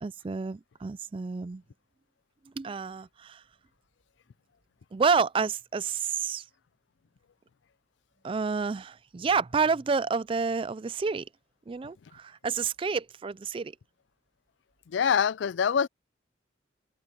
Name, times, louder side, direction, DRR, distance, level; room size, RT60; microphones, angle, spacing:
voice 1, 0.0-1.6 2.6-3.4 4.9-6.5 8.2-11.3 11.7-13.7, right 5 dB, 30° right, 0.3 m, -29 dB
voice 2, 14.9-15.9, left 7 dB, 70° left, 0.4 m, -24 dB
head